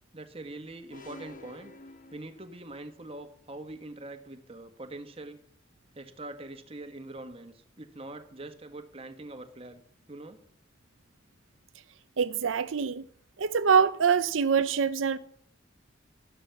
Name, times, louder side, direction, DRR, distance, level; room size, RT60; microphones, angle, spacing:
voice 1, 0.1-1.7 2.1-5.4 5.9-9.8 10.1-10.4, right 2 dB, 30° right, 1.4 m, -43 dB
sound 1, 0.9-2.9, left 2 dB, 40° left, 1.4 m, -49 dB
voice 2, 12.2-13.0 13.4-15.2, right 6 dB, 80° right, 0.6 m, -24 dB
13.5 x 11.0 x 7.0 m
head